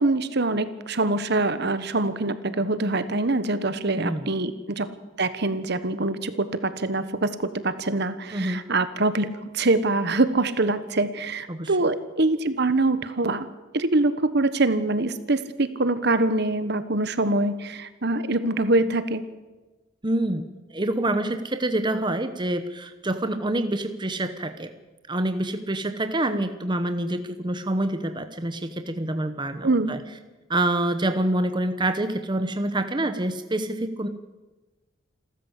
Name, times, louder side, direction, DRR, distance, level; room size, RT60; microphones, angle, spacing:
voice 1, 0.0-4.9 5.2-7.3 7.6-13.5 13.7-19.2 29.6-30.0, right 2 dB, 55° right, 12 dB, 1.4 m, -24 dB
voice 2, 3.9-4.3 8.3-8.6 11.5-11.8 20.0-24.7 25.1-30.0 30.5-34.1, right 1 dB, 25° right, 9 dB, 1.0 m, -27 dB
28.0 x 13.5 x 8.3 m, 1.2 s
head